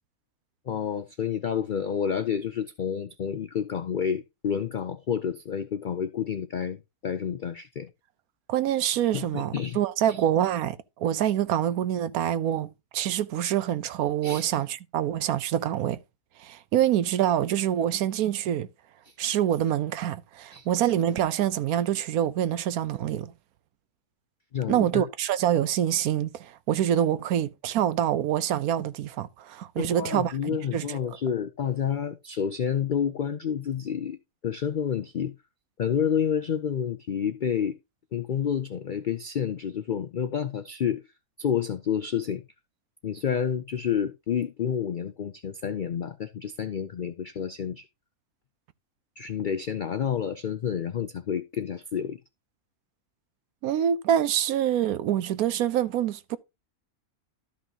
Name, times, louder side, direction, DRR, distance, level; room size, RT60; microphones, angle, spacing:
voice 1, 0.7-6.8 7.0-7.9 9.1-9.8 10.1-10.2 14.2-14.5 19.1-19.2 20.5-20.7 24.5-25.1 29.8-34.2 34.4-35.3 35.8-37.8 38.1-41.0 41.4-42.4 43.0-47.9 49.2-52.2, left 8 dB, 80° left, 0.4 m, -29 dB
voice 2, 8.5-16.0 16.4-18.7 19.2-23.3 24.7-31.0 53.6-56.4, right 11 dB, 85° right, 1.1 m, -26 dB
13.0 x 5.7 x 2.8 m
omnidirectional pair, 1.5 m